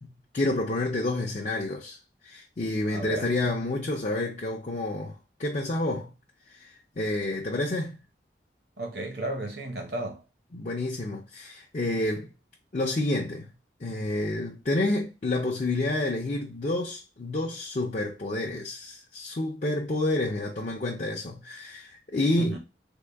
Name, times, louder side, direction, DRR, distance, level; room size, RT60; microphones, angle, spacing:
voice 1, 0.0-2.0 2.2-6.1 6.5-8.0 10.5-12.3 12.7-13.5 13.8-22.6, left 2 dB, 40° left, 0.5 m, -29 dB
voice 2, 2.9-3.3 8.8-10.2 22.4-22.6, right 1 dB, 65° right, 0.9 m, -34 dB
3.6 x 2.2 x 3.4 m
head